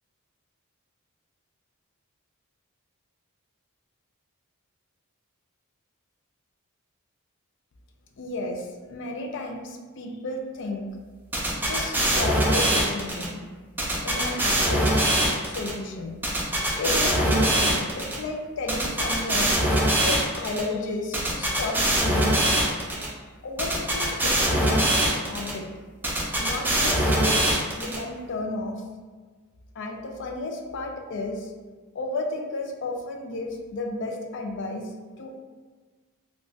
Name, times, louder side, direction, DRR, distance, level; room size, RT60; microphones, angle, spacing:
voice 1, 8.2-10.9 11.6-13.4 14.0-16.2 16.8-19.5 20.0-22.6 23.1-23.2 23.4-25.7 26.4-28.8 29.7-31.5 31.9-35.3, left 2 dB, 55° left, 3 dB, 0.4 m, -33 dB
sound 1, 11.3-13.3 13.8-15.7 16.2-18.2 18.7-20.6 21.1-23.1 23.6-25.5 26.0-28.0, right 1 dB, 10° right, 0.5 m, -22 dB
2.4 x 2.3 x 3.8 m, 1.4 s
head